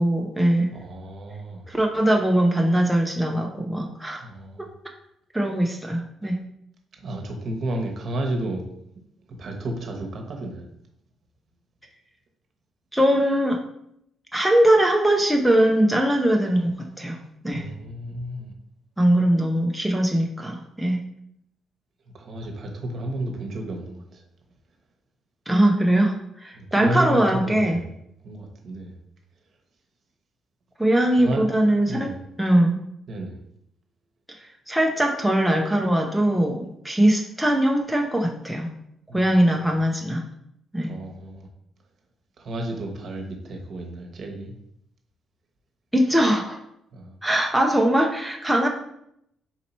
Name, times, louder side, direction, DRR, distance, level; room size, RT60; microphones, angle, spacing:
voice 1, 0.0-0.7 1.7-4.2 5.3-6.4 12.9-13.6 14.3-17.7 19.0-21.0 25.5-27.8 30.8-32.1 32.4-32.8 34.4-38.7 39.1-40.2 40.7-40.9 45.9-46.6 47.2-48.7, right 1 dB, 5° right, 0 dB, 0.6 m, -21 dB
voice 2, 0.7-1.6 4.2-4.7 7.0-8.7 9.4-10.6 17.5-18.5 22.1-24.2 26.5-27.9 28.2-28.9 31.1-31.4 31.9-32.2 33.1-33.4 39.1-39.6 40.8-41.5 42.4-44.5 46.9-47.2, right 1 dB, 55° right, 2 dB, 1.1 m, -32 dB
4.3 x 2.8 x 4.2 m, 0.75 s
cardioid pair, 90°, 0 cm